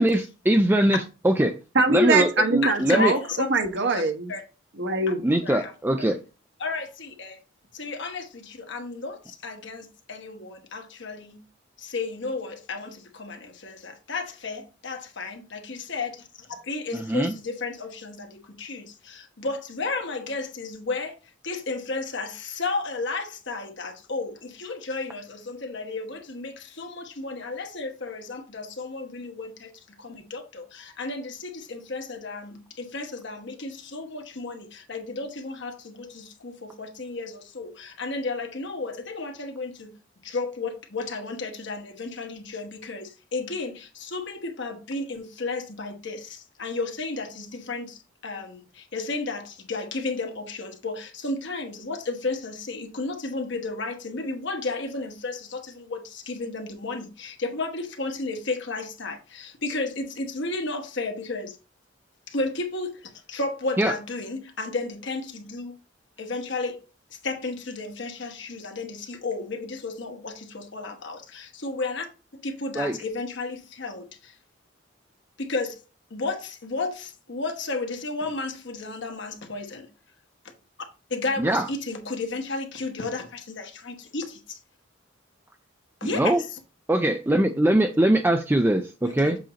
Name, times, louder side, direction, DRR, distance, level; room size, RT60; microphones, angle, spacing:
voice 1, 0.0-1.6 1.9-3.1 5.2-6.2 16.9-17.3 63.8-63.9 72.8-73.0 81.4-81.6 86.0-86.4 86.9-89.4, right 1 dB, 10° right, 0.4 m, -22 dB
voice 2, 1.7-4.3 4.8-5.2, right 2 dB, 60° right, 1.1 m, -23 dB
voice 3, 2.6-3.7 4.3-4.4 5.4-6.1 6.6-7.4 7.7-11.4 11.8-21.2 21.4-39.9 40.2-61.6 62.3-65.7 66.2-66.8 67.1-72.1 72.3-74.4 75.4-75.8 76.1-79.9 80.4-80.5 81.1-84.6 86.0-86.2 86.5-86.6 89.0-89.4, left 3 dB, 60° left, 1.3 m, -33 dB
7.6 x 2.7 x 5.0 m
head